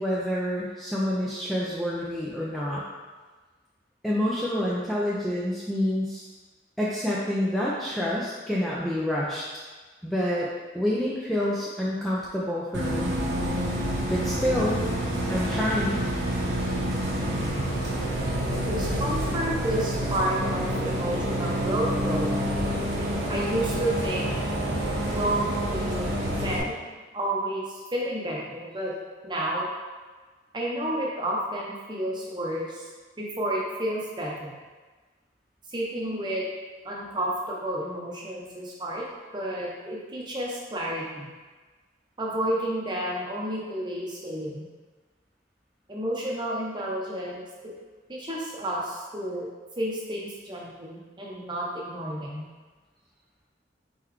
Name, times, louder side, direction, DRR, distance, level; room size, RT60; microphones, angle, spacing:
voice 1, 0.0-2.8 4.0-6.2 6.8-9.4 10.0-10.5 10.7-13.1 14.1-14.9 15.3-16.0, left 1 dB, ahead, -7 dB, 0.4 m, -27 dB
Bus, 12.7-26.6, equal, 80° right, 0.9 m, -28 dB
voice 2, 18.2-22.3 23.3-24.3 25.1-26.7 27.1-28.9 29.2-29.7 30.5-32.9 33.2-34.5 35.7-36.5 36.8-39.1 39.3-41.3 42.2-44.7 45.9-47.7 48.1-49.5 49.8-52.4, right 1 dB, 25° right, -3 dB, 0.8 m, -31 dB
4.3 x 3.9 x 3.0 m, 1.3 s
head